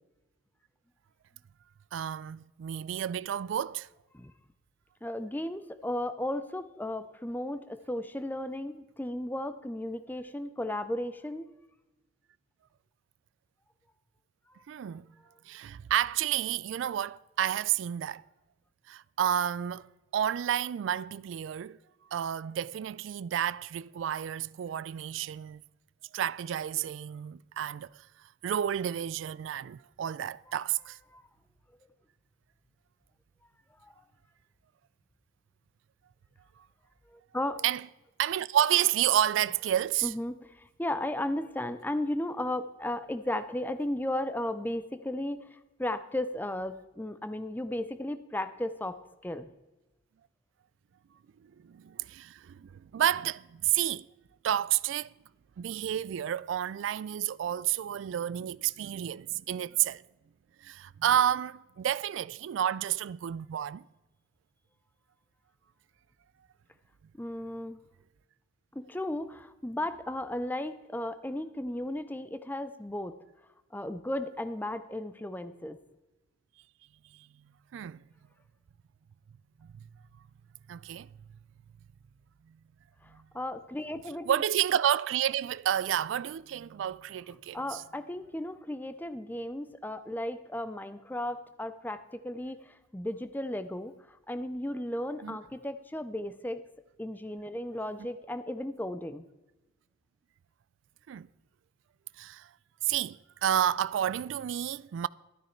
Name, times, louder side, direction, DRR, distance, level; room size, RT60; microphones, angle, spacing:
voice 1, 1.9-3.9 14.7-15.1 15.5-18.2 18.9-19.9 20.1-21.8 22.1-25.6 26.1-28.0 28.4-31.0 37.6-37.9 38.2-40.1 51.6-54.1 54.4-55.1 55.6-60.0 60.6-63.8 77.2-77.3 77.7-78.0 79.6-79.8 80.7-81.1 83.1-83.2 84.3-87.8 95.2-95.4 101.1-101.3 102.2-102.5 102.8-105.1, right 10 dB, 75° right, 0.3 m, -30 dB
voice 2, 5.0-11.5 14.5-14.6 31.1-31.2 33.8-33.9 37.1-37.6 40.0-49.0 49.2-49.5 67.2-67.8 68.7-73.2 73.7-75.8 83.0-84.4 87.5-96.6 97.0-99.3, left 1 dB, 10° left, 0.5 m, -35 dB
12.5 x 9.8 x 4.4 m
head